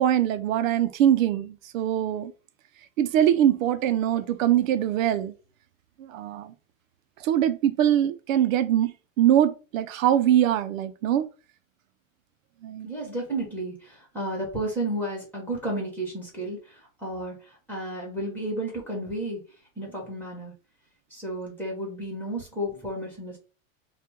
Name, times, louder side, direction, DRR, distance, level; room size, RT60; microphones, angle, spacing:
voice 1, 0.0-2.3 3.0-5.3 6.0-6.5 7.2-11.3 12.6-12.9, right 11 dB, 80° right, 0.7 m, -23 dB
voice 2, 12.8-17.4 17.7-19.4 19.8-20.5 21.1-23.4, right 1 dB, 5° left, 2.0 m, -32 dB
5.5 x 2.5 x 3.7 m
supercardioid pair, 160°, 39 cm